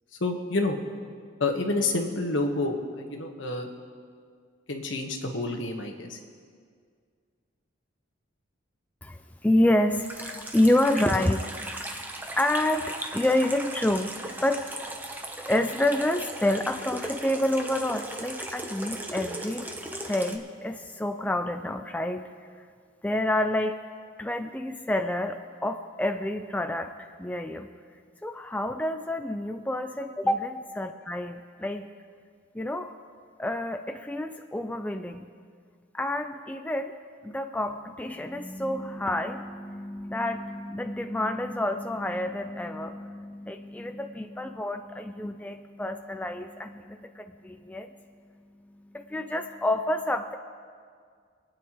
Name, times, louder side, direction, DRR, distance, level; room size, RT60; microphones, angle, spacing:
voice 1, 0.2-0.8 1.4-3.7 4.7-6.2, left 2 dB, 70° left, 3 dB, 1.3 m, -28 dB
voice 2, 9.0-12.0 12.4-14.1 14.4-14.6 15.5-19.7 20.0-22.3 23.0-23.8 24.2-27.7 28.2-31.9 32.5-32.9 33.4-35.3 35.9-36.9 37.2-47.9 48.7-50.4, left 1 dB, 10° left, 6 dB, 0.3 m, -28 dB
Water tap faucet / Sink (filling or washing), 10.0-20.4, right 1 dB, 10° right, 0.8 m, -37 dB
27.0 x 9.2 x 3.1 m, 2.1 s
head